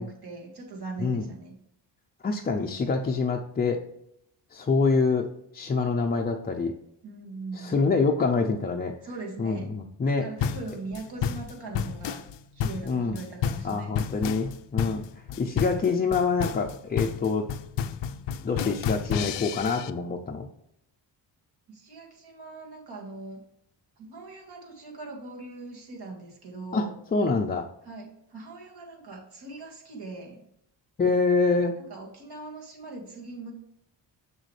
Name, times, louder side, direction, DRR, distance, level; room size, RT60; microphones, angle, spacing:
voice 1, 0.0-1.6 7.0-7.9 9.0-9.7 10.2-12.3 12.5-14.1 21.7-23.4 24.0-27.0 27.8-30.5 31.8-33.5, right 3 dB, 60° right, 0 dB, 2.2 m, -40 dB
voice 2, 2.2-3.8 4.5-5.3 5.5-6.7 7.5-8.9 9.4-10.3 12.8-13.2 13.6-15.0 15.4-17.5 18.4-20.5 26.7-27.7 31.0-31.8, left 4 dB, 20° left, 0 dB, 0.5 m, -26 dB
sound 1, 10.4-19.9, left 8 dB, 75° left, 0.6 m, -30 dB
7.1 x 6.5 x 3.2 m, 0.78 s
cardioid pair, 125°, 43 cm